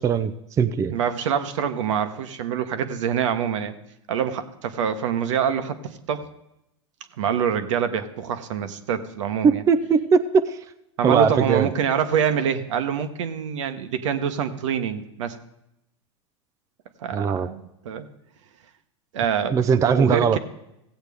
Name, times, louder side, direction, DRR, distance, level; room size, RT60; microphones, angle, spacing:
voice 1, 0.0-1.0 9.4-10.6 11.0-11.7 17.1-17.5 19.5-20.4, right 6 dB, 20° right, 10 dB, 0.4 m, -20 dB
voice 2, 0.9-3.7 4.1-6.3 7.2-9.6 11.0-15.4 17.0-18.1 19.1-20.4, right 8 dB, 75° right, 9 dB, 1.0 m, -25 dB
15.5 x 8.0 x 3.5 m, 0.85 s
hypercardioid pair, 115°, 16 cm